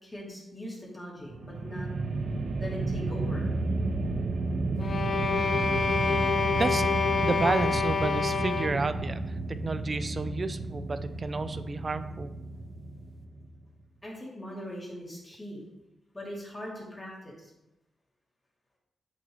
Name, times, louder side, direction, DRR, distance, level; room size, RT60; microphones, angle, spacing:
voice 1, 0.0-1.9 2.6-3.5 14.0-15.6 16.1-17.5, left 1 dB, 20° left, -4 dB, 2.6 m, -40 dB
sound 1, 1.2-13.6, right 2 dB, 65° right, 0.9 m, -32 dB
sound 2, 4.8-8.9, left 5 dB, 55° left, 0.7 m, -27 dB
voice 2, 6.5-6.8 7.2-12.3, right 3 dB, 35° right, 11 dB, 0.4 m, -31 dB
8.4 x 6.8 x 3.1 m, 0.94 s
cardioid pair, 105°, 0 cm